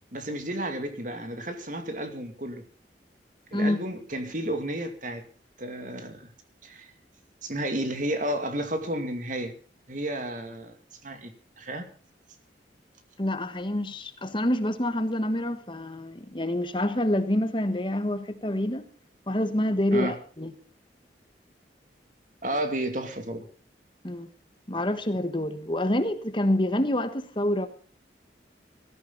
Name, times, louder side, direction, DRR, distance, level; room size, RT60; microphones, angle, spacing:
voice 1, 0.1-2.6 3.5-5.2 5.6-6.3 6.6-6.9 7.4-9.5 9.9-10.8 11.0-11.3 11.6-11.8 19.9-20.2 22.4-23.5, right 1 dB, 45° right, 2.5 m, -32 dB
voice 2, 13.2-18.9 19.3-20.5 24.0-24.3 24.7-27.7, left 1 dB, 25° left, 1.3 m, -27 dB
18.0 x 14.0 x 4.0 m
head